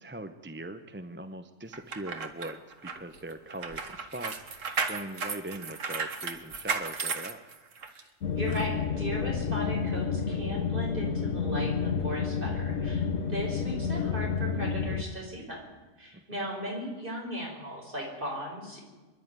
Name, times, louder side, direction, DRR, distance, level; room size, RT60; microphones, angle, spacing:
voice 1, 0.0-7.5 13.2-13.4 16.1-16.5, right 1 dB, 10° right, 8 dB, 0.7 m, -41 dB
sound 1, 1.7-8.0 8.5-8.6, right 5 dB, 85° right, 1.8 m, -35 dB
sound 2, 8.2-15.0, left 6 dB, 90° left, 1.4 m, -30 dB
voice 2, 8.3-18.8, equal, 45° right, -1 dB, 6.0 m, -37 dB
24.5 x 11.5 x 9.5 m, 1.3 s
omnidirectional pair, 1.3 m